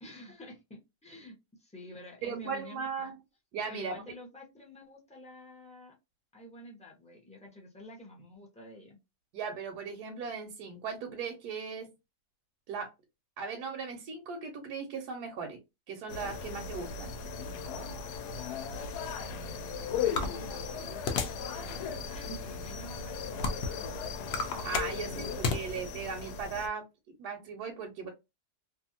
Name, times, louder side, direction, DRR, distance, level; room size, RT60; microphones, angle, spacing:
voice 1, 0.0-3.1 3.7-6.0 6.3-9.0 19.2-23.9 24.9-26.0, left 1 dB, 5° left, -2 dB, 0.5 m, -49 dB
voice 2, 2.2-3.1 3.5-4.0 9.3-11.9 12.7-12.9 13.4-15.6 15.9-17.1 24.6-26.8 27.2-28.1, right 5 dB, 85° right, 2 dB, 1.2 m, -37 dB
sound 1, 16.1-26.7, left 6 dB, 80° left, 1.1 m, -37 dB
sound 2, 20.2-21.5 22.0-22.2 22.8-23.8 24.2-25.6, left 4 dB, 65° left, 0.6 m, -32 dB
2.7 x 2.4 x 2.7 m, 0.24 s
omnidirectional pair, 1.7 m